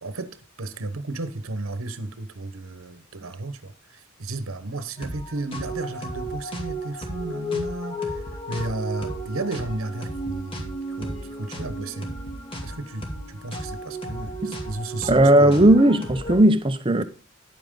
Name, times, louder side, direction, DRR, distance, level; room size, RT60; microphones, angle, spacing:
voice 1, 0.0-12.1 12.6-15.8, right 2 dB, 80° right, 1.0 m, -33 dB
sound 1, 5.0-16.4, equal, 25° left, 2.3 m, -33 dB
voice 2, 15.1-17.0, right 1 dB, 25° right, 0.8 m, -16 dB
10.5 x 8.8 x 3.7 m
head